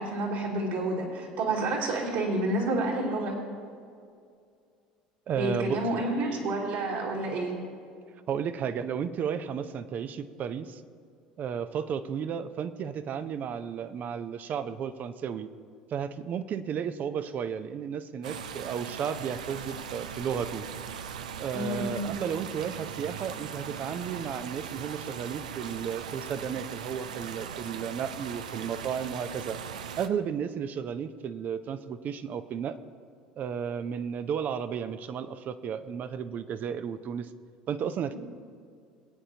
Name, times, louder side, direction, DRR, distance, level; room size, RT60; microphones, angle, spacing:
voice 1, 0.0-3.4 5.3-7.5 21.5-21.8, right 2 dB, 65° right, -4 dB, 3.3 m, -29 dB
voice 2, 5.3-6.0 8.3-10.8 11.4-15.5 15.9-20.7 21.4-29.6 30.0-32.8 33.4-37.3 37.7-38.1, right 7 dB, 45° right, 12 dB, 0.6 m, -33 dB
sound 1, 18.2-30.1, right 7 dB, 85° right, 0.5 m, -39 dB
21.5 x 8.8 x 2.9 m, 2.3 s
hypercardioid pair, 75°, 4 cm